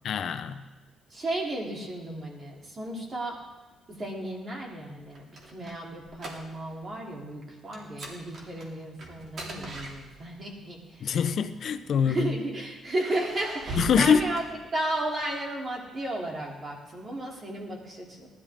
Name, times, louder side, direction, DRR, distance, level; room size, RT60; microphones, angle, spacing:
voice 1, 0.0-0.6 11.0-12.3 13.8-14.2, left 7 dB, 55° left, 10 dB, 0.8 m, -24 dB
voice 2, 1.1-3.3 3.9-11.1 12.0-14.4 14.7-18.3, right 1 dB, 35° right, -1 dB, 3.3 m, -34 dB
sound 1, 5.1-6.8 7.1-7.3 7.7-10.5 11.4-12.2 12.8-15.1, right 2 dB, 50° right, 2.7 m, -41 dB
18.5 x 12.5 x 3.7 m, 1.2 s
cardioid pair, 115°, 0 cm